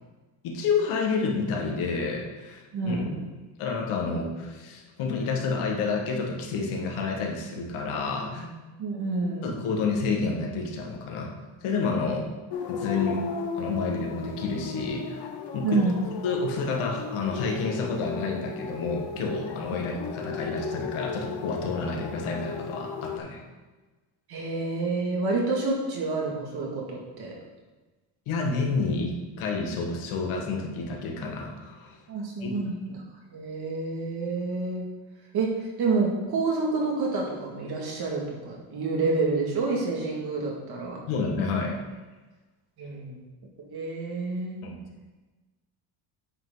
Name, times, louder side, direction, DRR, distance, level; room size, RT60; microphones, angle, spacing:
voice 1, 0.4-3.1 3.6-8.5 9.4-11.3 11.6-12.3 12.7-13.2 13.5-15.3 15.5-15.8 16.2-23.4 28.3-32.0 32.4-32.6 41.1-41.8 44.6-44.8, left 4 dB, 75° left, 1 dB, 1.9 m, -29 dB
voice 2, 2.7-3.2 8.8-9.6 15.6-15.9 24.3-27.3 32.1-32.7 33.3-34.8 35.3-41.0 42.8-43.2 43.6-44.6, right 3 dB, 50° right, -2 dB, 2.3 m, -28 dB
sound 1, 12.5-23.2, left 5 dB, 55° left, 1.2 m, -36 dB
8.8 x 8.0 x 4.0 m, 1.2 s
cardioid pair, 150°, 50 cm